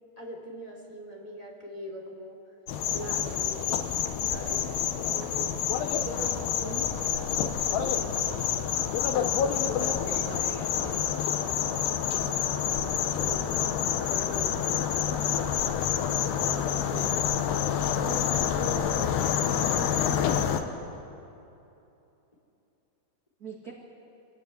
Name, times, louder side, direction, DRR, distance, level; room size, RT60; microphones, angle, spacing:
voice 1, 0.2-2.4 2.9-3.8 4.3-5.5 6.0-8.7 11.5-11.6 13.1-15.5 16.4-17.2 18.0-19.7 20.1-20.9, equal, 10° left, -1 dB, 2.9 m, -42 dB
sound 1, 2.7-20.6, left 9 dB, 85° left, 3.2 m, -28 dB
voice 2, 9.7-11.2 16.9-17.2 23.4-23.7, right 3 dB, 40° right, -1 dB, 1.5 m, -42 dB
25.0 x 17.0 x 9.4 m, 2.8 s
omnidirectional pair, 4.6 m